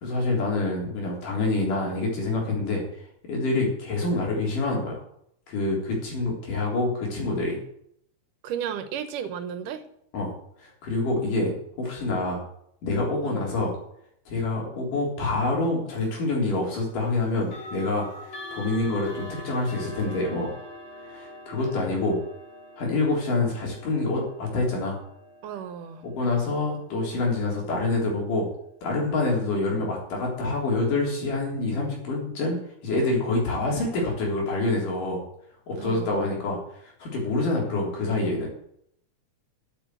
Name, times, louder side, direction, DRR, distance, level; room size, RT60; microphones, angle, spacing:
voice 1, 0.0-2.8 3.3-5.0 5.5-7.6 10.1-10.3 10.6-12.4 12.8-13.7 14.3-20.5 21.1-22.2 22.8-25.0 26.0-28.5 28.8-32.6 32.8-35.2 35.7-38.6, left 2 dB, 85° left, -2 dB, 5.3 m, -26 dB
voice 2, 8.4-9.8 13.2-13.5 25.4-26.0 35.8-36.2, right 8 dB, 85° right, 10 dB, 2.6 m, -34 dB
sound 1, 15.9-16.1 17.4-28.3, left 1 dB, 55° left, 3.4 m, -44 dB
9.0 x 8.9 x 7.9 m, 0.71 s
omnidirectional pair, 3.6 m